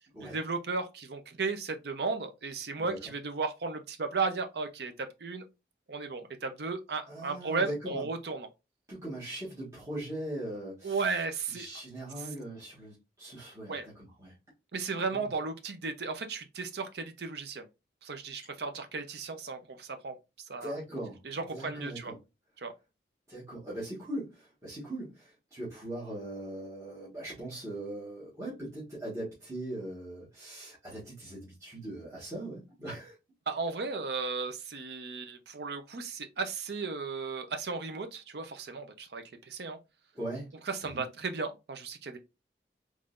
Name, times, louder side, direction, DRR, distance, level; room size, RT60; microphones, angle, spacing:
voice 1, 0.2-5.4 5.9-8.5 10.8-11.7 12.2-12.3 13.7-13.9 14.7-17.7 18.0-20.8 21.2-22.1 22.6-22.7 33.5-39.8 40.7-42.2, right 4 dB, 70° right, 0.6 m, -35 dB
voice 2, 7.1-8.1 8.9-11.1 11.5-14.3 15.1-15.3 20.6-21.2 21.5-22.1 23.3-33.2 40.1-40.5 40.8-41.0, right 1 dB, 20° right, 1.4 m, -40 dB
3.6 x 3.2 x 2.4 m
head